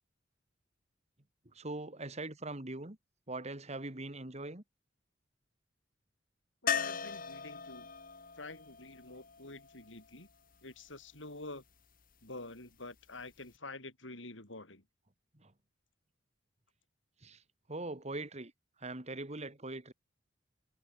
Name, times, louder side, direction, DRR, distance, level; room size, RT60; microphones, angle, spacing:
voice 1, 1.5-3.0 3.3-4.6 15.3-15.5 17.2-17.4 17.7-18.5 18.8-19.9, right 2 dB, 35° right, 2.5 m, -41 dB
voice 2, 6.6-7.9 8.4-10.3 10.6-11.6 12.2-14.8, left 2 dB, 80° left, 7.4 m, -48 dB
sound 1, 6.7-10.5 13.2-13.3 13.5-13.6, left 7 dB, 50° left, 2.8 m, -39 dB
head